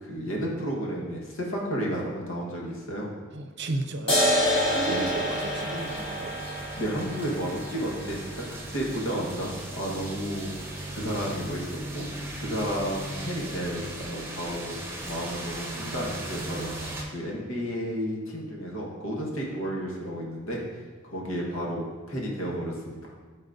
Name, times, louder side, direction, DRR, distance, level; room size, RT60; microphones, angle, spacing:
voice 1, 0.0-3.1 4.9-5.0 6.7-8.2 8.7-10.5 10.9-12.1 12.4-14.7 15.1-16.7 17.1-20.6 21.0-23.1, equal, 90° left, -2 dB, 1.5 m, -32 dB
voice 2, 3.3-6.4, right 2 dB, 60° right, 6 dB, 0.5 m, -34 dB
sound 1, 4.1-11.1, equal, 55° left, 1.9 m, -29 dB
sound 2, 4.2-17.0, right 1 dB, 15° right, 0.9 m, -38 dB
11.5 x 4.2 x 2.6 m, 1.4 s
head